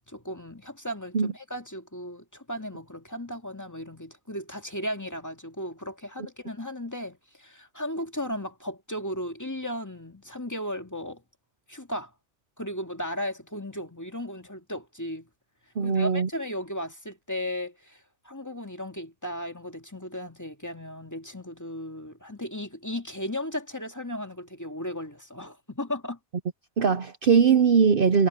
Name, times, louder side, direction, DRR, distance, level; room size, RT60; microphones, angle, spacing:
voice 1, 0.1-11.2 11.7-12.1 12.6-15.3 15.8-26.2, left 1 dB, 15° left, 2.1 m, -35 dB
voice 2, 15.8-16.3 26.8-28.3, right 6 dB, 55° right, 0.9 m, -20 dB
omnidirectional pair, 1.3 m